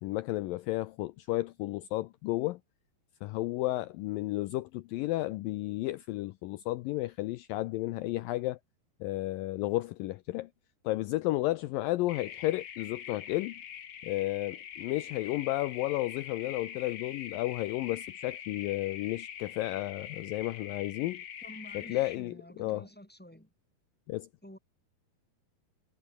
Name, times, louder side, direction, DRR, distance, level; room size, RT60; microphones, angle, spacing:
voice 1, 0.0-2.6 3.2-8.6 9.0-10.5 10.8-13.6 14.0-21.2 21.7-22.8 24.1-24.3, left 17 dB, 90° left, 2.0 m, -32 dB
sound 1, 12.1-22.2, left 9 dB, 75° left, 1.2 m, -43 dB
voice 2, 21.4-23.5 24.4-24.6, equal, ahead, 4.6 m, -50 dB
omnidirectional pair, 4.8 m